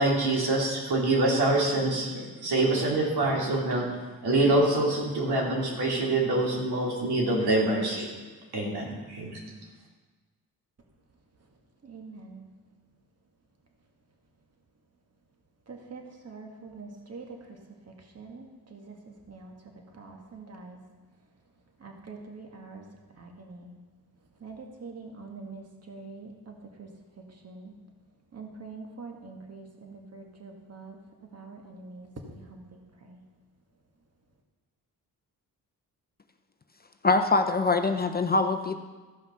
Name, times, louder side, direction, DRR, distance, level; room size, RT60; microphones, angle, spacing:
voice 1, 0.0-3.9 4.2-8.1 8.5-9.4, right 2 dB, 75° right, -3 dB, 3.0 m, -25 dB
voice 2, 11.8-12.5 15.7-17.4 18.1-18.9 19.3-19.5 20.0-20.8 21.8-22.8 23.2-23.7 24.4-26.9 27.4-27.7 28.3-31.0 31.3-33.2, right 4 dB, 40° right, 2 dB, 1.7 m, -44 dB
voice 3, 37.0-38.8, left 3 dB, 25° left, 6 dB, 0.6 m, -23 dB
14.5 x 5.7 x 5.6 m, 1.3 s
cardioid pair, 85°, 39 cm